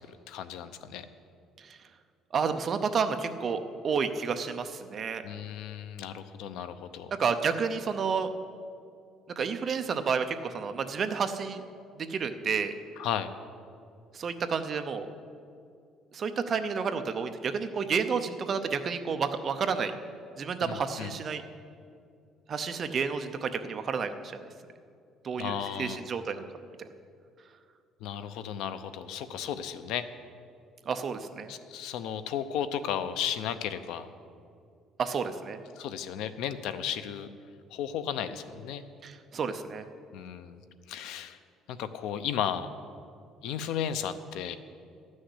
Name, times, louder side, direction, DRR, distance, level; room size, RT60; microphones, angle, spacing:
voice 1, 0.1-1.1 5.2-7.1 13.0-13.3 20.6-21.1 25.4-26.0 28.0-30.0 31.5-34.1 35.8-37.3 37.7-38.8 40.1-40.6 40.9-41.4 41.7-42.7 43.4-44.6, left 9 dB, 80° left, 12 dB, 0.7 m, -34 dB
voice 2, 2.3-5.2 7.1-8.3 9.4-11.6 12.0-12.7 14.1-15.1 16.1-19.9 20.4-21.4 22.5-24.4 25.2-26.5 26.8-26.9 30.9-31.5 35.0-35.6 39.0-39.8, right 6 dB, 30° right, 8 dB, 0.6 m, -30 dB
12.5 x 6.4 x 9.8 m, 2.4 s
cardioid pair, 165°, 0 cm